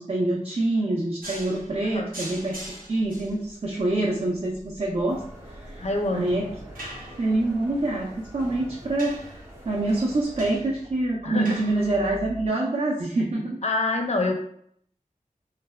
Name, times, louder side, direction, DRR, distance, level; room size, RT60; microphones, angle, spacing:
voice 1, 0.0-5.2 5.6-5.8 6.1-6.5 7.2-9.3 9.6-13.6, right 2 dB, 45° right, -3 dB, 0.4 m, -26 dB
sound 1, 1.2-12.5, right 1 dB, 90° right, 0.7 m, -43 dB
sound 2, 5.1-10.6, right 1 dB, 20° right, 0.8 m, -45 dB
voice 2, 5.8-6.3 11.2-11.6 13.6-14.3, left 2 dB, 50° left, 4 dB, 0.4 m, -26 dB
3.2 x 2.0 x 2.2 m, 0.67 s
wide cardioid pair, 65°, 14 cm